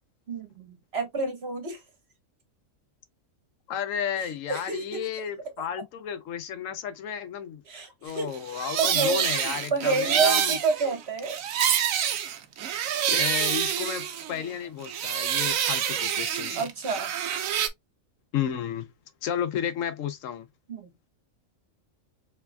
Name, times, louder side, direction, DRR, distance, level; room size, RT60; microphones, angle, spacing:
voice 1, 0.3-1.8 4.5-5.1 7.7-8.3 8.8-9.3 9.7-11.4 16.5-17.1 20.7-20.9, right 4 dB, 50° right, 1.6 m, -28 dB
voice 2, 3.7-7.6 8.0-10.6 13.1-16.6 18.3-18.9 19.2-20.5, left 9 dB, 80° left, 1.0 m, -32 dB
sound 1, 8.3-14.5 14.8-17.7, right 9 dB, 85° right, 1.1 m, -27 dB
4.5 x 3.4 x 2.2 m
omnidirectional pair, 1.4 m